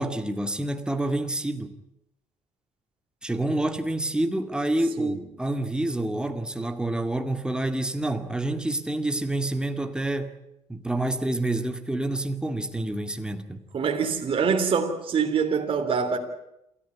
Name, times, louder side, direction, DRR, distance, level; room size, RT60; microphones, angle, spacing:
voice 1, 0.0-1.7 3.2-10.4 10.7-13.6, right 1 dB, 5° right, 2.1 m, -28 dB
voice 2, 13.7-16.2, right 6 dB, 45° right, 3.1 m, -25 dB
27.5 x 14.0 x 9.6 m
cardioid pair, 100°, 12 cm